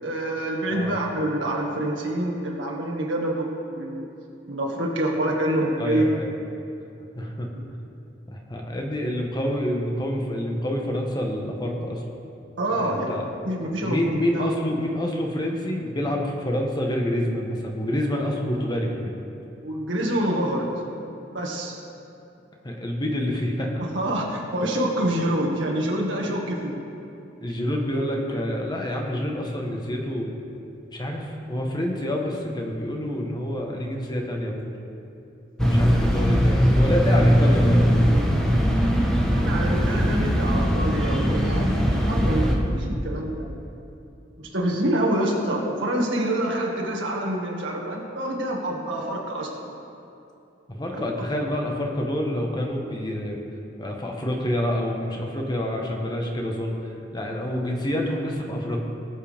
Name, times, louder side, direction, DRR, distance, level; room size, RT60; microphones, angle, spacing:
voice 1, 0.0-4.1 4.5-6.1 7.5-7.6 12.6-13.2 13.4-14.5 19.6-20.7 21.3-21.8 23.8-26.8 35.6-36.1 39.3-43.5 44.5-49.7 50.9-51.2, right 1 dB, 75° right, -2 dB, 2.0 m, -26 dB
voice 2, 5.8-6.3 7.1-7.5 8.3-12.0 12.8-13.3 13.8-19.1 22.6-23.7 27.4-30.3 30.9-34.7 35.7-37.8 50.7-53.4 53.8-56.7 57.1-58.8, left 1 dB, 25° left, 1 dB, 1.3 m, -27 dB
sound 1, 35.6-42.6, equal, 5° left, 1.2 m, -20 dB
19.5 x 7.6 x 3.6 m, 2.7 s
head